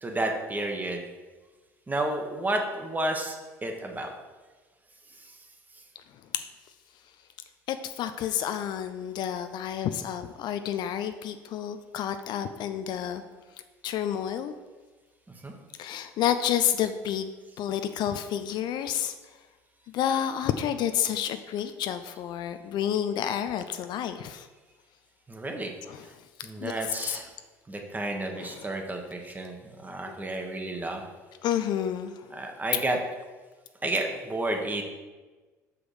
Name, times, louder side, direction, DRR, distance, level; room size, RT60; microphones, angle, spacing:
voice 1, 0.0-1.0 1.9-3.4 3.6-4.1 5.2-5.4 15.4-15.5 25.3-25.7 26.4-27.3 27.7-31.0 32.3-33.0 33.8-34.8, right 2 dB, 20° right, 3 dB, 1.3 m, -31 dB
voice 2, 7.7-13.2 13.8-14.5 15.8-17.3 17.6-19.1 19.9-24.5 25.9-26.1 26.6-26.7 27.1-27.2 28.4-28.7 31.4-32.3, left 10 dB, 55° left, 9 dB, 0.4 m, -30 dB
6.1 x 4.9 x 5.0 m, 1.3 s
hypercardioid pair, 60°, 9 cm